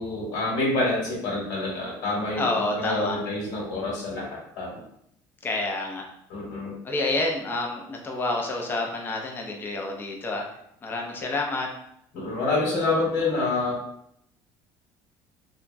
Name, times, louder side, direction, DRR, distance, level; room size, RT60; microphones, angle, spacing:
voice 1, 0.0-4.8 6.3-6.8 12.1-13.8, left 2 dB, 70° left, -4 dB, 1.2 m, -27 dB
voice 2, 2.4-3.2 5.4-6.0 6.8-10.4 10.8-11.7, left 2 dB, 25° left, 0 dB, 0.5 m, -28 dB
2.8 x 2.2 x 2.5 m, 0.74 s
cardioid pair, 120°, 9 cm